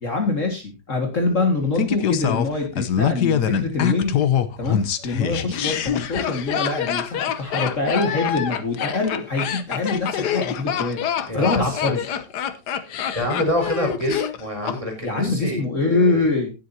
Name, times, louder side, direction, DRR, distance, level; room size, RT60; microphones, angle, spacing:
voice 1, 0.0-4.2 4.6-11.0 11.3-12.0 15.0-16.5, left 3 dB, 45° left, 2 dB, 2.3 m, -24 dB
Laughter, 1.8-14.8 15.0-15.1, left 9 dB, 70° left, 1.5 m, -25 dB
voice 2, 11.3-11.9 13.1-16.2, left 1 dB, 20° right, 2 dB, 4.3 m, -26 dB
18.0 x 7.7 x 2.8 m, 0.28 s
omnidirectional pair, 1.9 m